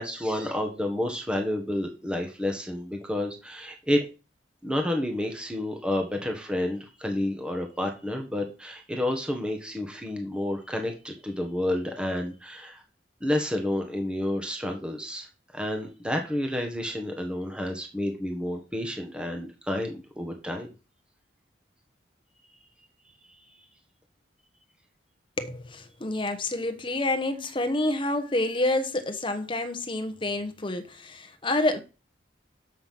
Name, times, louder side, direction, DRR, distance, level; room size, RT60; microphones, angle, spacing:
voice 1, 0.0-4.0 4.6-12.8 13.2-15.3 15.5-20.7, left 1 dB, 5° right, 1.5 m, -30 dB
voice 2, 25.4-31.8, left 2 dB, 30° left, 1.1 m, -28 dB
7.4 x 5.7 x 6.0 m
head